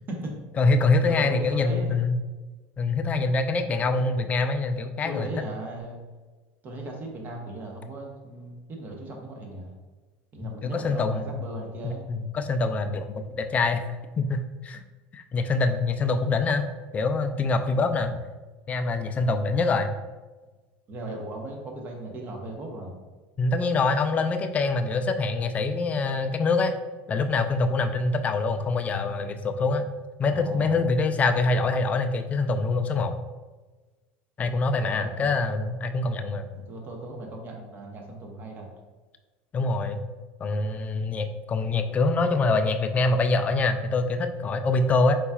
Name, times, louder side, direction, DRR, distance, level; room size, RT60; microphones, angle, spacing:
voice 1, 0.6-2.1 2.8-5.3 10.4-11.4 11.8-13.9 14.2-14.8 15.1-16.7 16.9-18.1 18.7-19.9 23.4-26.8 27.1-29.8 30.2-33.2 34.4-36.5 39.5-40.0 40.4-45.2, left 3 dB, 25° left, 7 dB, 0.4 m, -25 dB
voice 2, 1.1-2.0 3.8-3.9 5.0-6.0 6.6-9.7 10.3-12.1 20.9-22.9 30.2-30.8 34.9-35.3 36.5-38.7, right 1 dB, 35° right, 1 dB, 1.0 m, -37 dB
4.7 x 3.9 x 2.4 m, 1.3 s
supercardioid pair, 120°, 6 cm